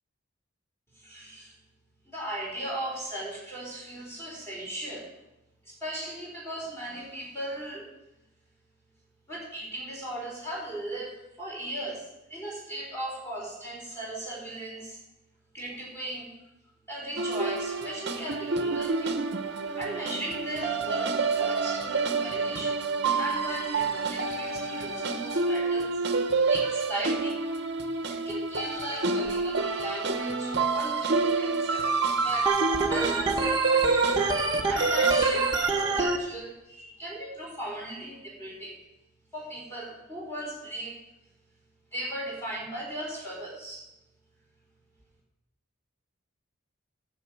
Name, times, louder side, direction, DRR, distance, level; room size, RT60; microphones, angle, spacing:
voice 1, 0.9-1.5 2.1-5.1 5.6-8.0 9.3-15.0 15.5-16.3 16.9-19.2 19.8-22.8 23.2-25.9 26.5-27.7 28.1-32.5 32.9-34.1 34.7-38.8 39.3-41.0 41.9-43.8, right 1 dB, 10° left, -3 dB, 4.0 m, -37 dB
sound 1, 17.2-35.9, right 4 dB, 55° right, 0.9 m, -28 dB
Organ, 32.5-36.2, right 3 dB, 20° right, 1.1 m, -26 dB
9.6 x 6.9 x 7.8 m, 0.92 s
head